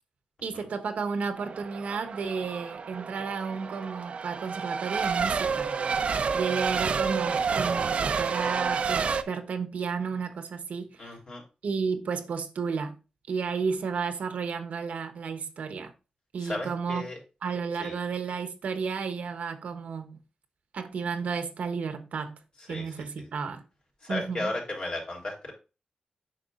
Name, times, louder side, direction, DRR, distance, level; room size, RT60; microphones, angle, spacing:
voice 1, 0.4-5.7 6.3-11.2 11.6-13.0 13.3-15.9 16.3-17.1 17.4-20.2 20.7-22.4 22.7-23.6 24.1-24.5, right 5 dB, 85° right, 1.1 m, -32 dB
Race car auto racing / Accelerating revving vroom / Mechanisms, 1.4-9.2, right 5 dB, 60° right, 0.6 m, -29 dB
voice 2, 11.0-11.4 16.4-17.2 17.8-18.0 22.7-23.3 24.0-25.5, left 2 dB, 50° left, 3.5 m, -35 dB
8.8 x 5.9 x 2.5 m
wide cardioid pair, 120°, 2 cm